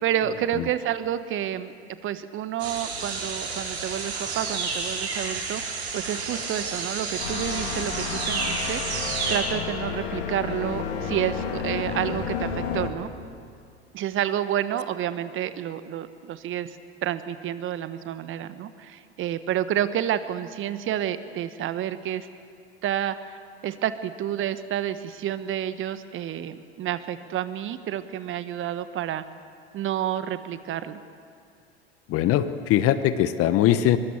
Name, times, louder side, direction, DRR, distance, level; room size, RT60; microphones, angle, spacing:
voice 1, 0.0-1.7 2.0-5.6 5.9-8.8 9.3-13.1 13.9-16.8 17.0-22.3 22.8-23.4 23.6-29.2 29.7-31.0, right 11 dB, 35° right, 12 dB, 1.3 m, -29 dB
sound 1, 2.6-9.4, right 4 dB, 75° right, 6.5 m, -31 dB
sound 2, 7.2-12.9, left 6 dB, 70° left, 3.2 m, -31 dB
voice 2, 32.1-34.0, left 12 dB, 45° left, 12 dB, 1.2 m, -21 dB
23.0 x 22.5 x 7.3 m, 2.3 s
figure-of-eight pair, 80°, 33 cm